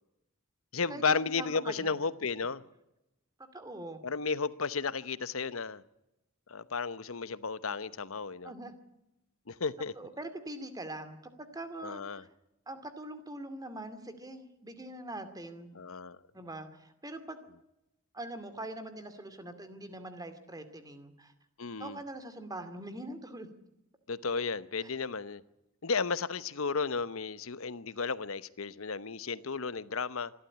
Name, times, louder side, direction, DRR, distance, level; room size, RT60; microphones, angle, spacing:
voice 1, 0.7-2.6 4.0-5.8 6.5-8.5 9.5-9.9 11.8-12.2 15.7-16.2 21.6-22.0 24.1-25.4 25.8-30.3, left 4 dB, 85° left, 0.9 m, -33 dB
voice 2, 1.4-2.0 3.5-4.0 8.4-8.7 10.0-12.3 12.7-15.7 16.3-17.4 18.1-21.3 21.8-23.5 24.8-24.9, right 1 dB, 20° right, 2.5 m, -43 dB
26.0 x 12.5 x 9.9 m
head